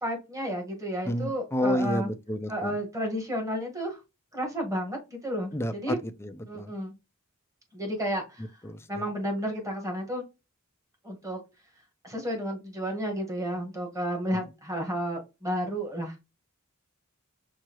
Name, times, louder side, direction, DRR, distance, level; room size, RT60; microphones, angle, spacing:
voice 1, 0.0-2.1 2.5-4.0 4.3-6.0 6.5-6.9 7.7-8.5 8.9-10.2 11.0-11.4 12.0-16.2, equal, 15° right, 1.5 m, -32 dB
voice 2, 1.1-2.8 5.5-6.7 8.6-9.0 14.3-14.4, left 1 dB, 10° left, 0.5 m, -30 dB
6.1 x 2.8 x 3.0 m
head